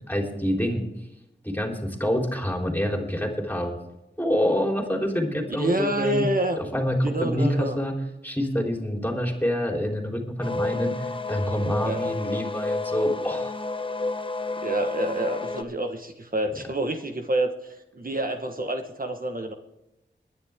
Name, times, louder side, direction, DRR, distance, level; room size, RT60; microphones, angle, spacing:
voice 1, 0.1-0.9 1.4-3.8 4.2-6.3 6.6-8.0 8.2-13.5, equal, 10° left, 1 dB, 3.6 m, -26 dB
voice 2, 5.6-6.6 7.0-7.8 11.8-12.1 14.6-19.5, right 1 dB, 50° right, 4 dB, 1.3 m, -28 dB
sound 1, 10.4-15.6, left 2 dB, 30° left, 0.9 m, -30 dB
22.0 x 10.5 x 3.6 m, 0.93 s
wide cardioid pair, 60°, 19 cm